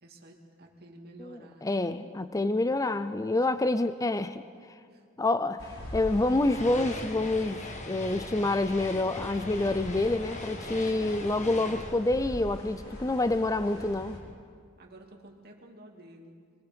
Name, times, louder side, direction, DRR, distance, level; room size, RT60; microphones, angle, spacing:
voice 1, 0.0-1.9 2.7-3.5 4.9-5.3 13.8-14.2 14.8-16.4, right 1 dB, 50° right, 0 dB, 2.4 m, -52 dB
voice 2, 1.2-4.4 5.2-14.2, left 2 dB, 15° left, 12 dB, 0.4 m, -27 dB
sound 1, 5.6-14.2, equal, 75° left, 3.9 m, -43 dB
sound 2, 6.0-13.4, left 2 dB, 35° left, 1.5 m, -41 dB
25.0 x 20.0 x 5.2 m, 2.1 s
head